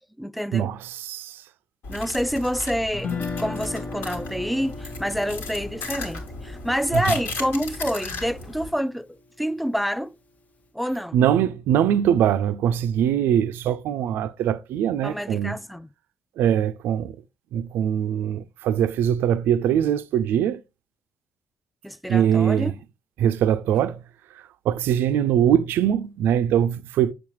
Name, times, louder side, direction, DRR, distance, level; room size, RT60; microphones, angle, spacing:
voice 1, 0.0-0.7 1.9-3.1 3.4-10.1 10.7-11.2 15.0-15.9 21.8-22.7, equal, ahead, 0.4 m, -27 dB
voice 2, 0.5-1.3 11.1-15.6 16.4-17.1 17.5-20.6 22.1-22.7 23.2-24.0 24.7-27.1, right 9 dB, 60° right, 0.4 m, -22 dB
sound 1, 1.8-8.7, left 3 dB, 60° left, 1.5 m, -36 dB
Guitar, 2.9-9.1, left 4 dB, 40° left, 0.9 m, -36 dB
7.0 x 6.4 x 3.0 m
figure-of-eight pair, 45°, 4 cm